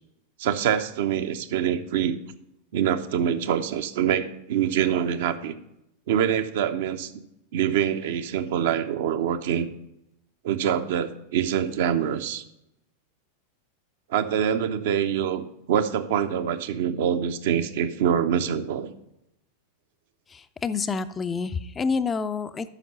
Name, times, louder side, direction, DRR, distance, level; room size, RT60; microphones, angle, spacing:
voice 1, 0.4-2.2 2.7-5.5 6.1-7.1 7.5-9.7 10.4-12.4 14.1-18.9, right 9 dB, 55° right, 9 dB, 0.6 m, -25 dB
voice 2, 20.3-22.7, left 5 dB, 20° left, 12 dB, 0.4 m, -28 dB
9.0 x 5.9 x 5.5 m, 0.85 s
figure-of-eight pair, 90°, 0 cm